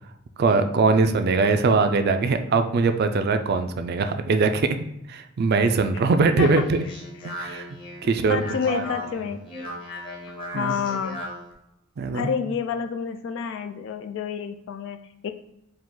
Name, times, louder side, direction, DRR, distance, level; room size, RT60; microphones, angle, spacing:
voice 1, 0.4-4.8 5.1-6.8 7.2-7.7 8.0-8.8 10.5-10.7 12.0-12.3, right 4 dB, 50° right, 8 dB, 0.4 m, -21 dB
Speech, 6.1-11.5, equal, 25° left, 1.0 m, -38 dB
voice 2, 8.3-9.4 10.5-11.2 12.1-15.3, left 7 dB, 65° left, 8 dB, 0.3 m, -29 dB
4.8 x 2.4 x 3.7 m, 0.84 s
head